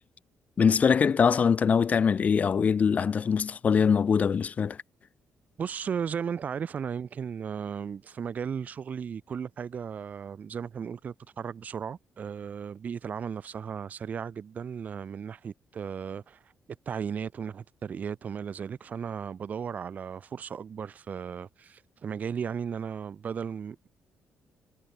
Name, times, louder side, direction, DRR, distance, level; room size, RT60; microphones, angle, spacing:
voice 1, 0.6-4.8, left 6 dB, 35° left, 0.7 m, -23 dB
voice 2, 5.6-16.4 16.9-23.9, right 7 dB, 40° right, 0.7 m, -35 dB
cardioid pair, 155°, 4 cm